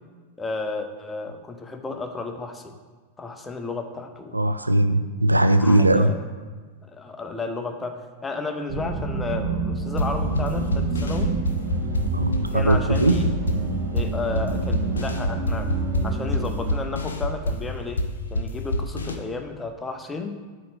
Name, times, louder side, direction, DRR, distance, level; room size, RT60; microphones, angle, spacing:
voice 1, 0.4-2.7 3.2-4.5 5.6-6.2 6.8-11.4 12.5-13.3 13.9-15.7 16.0-18.0 18.3-20.4, left 3 dB, 15° left, 5 dB, 0.7 m, -32 dB
voice 2, 4.3-6.1 12.1-13.2, right 1 dB, 85° right, 10 dB, 0.3 m, -19 dB
sound 1, 8.7-16.7, right 3 dB, 50° right, 1.0 m, -28 dB
sound 2, 10.0-19.2, left 1 dB, 70° left, 0.6 m, -27 dB
8.1 x 3.1 x 6.1 m, 1.4 s
figure-of-eight pair, 90°, 0 cm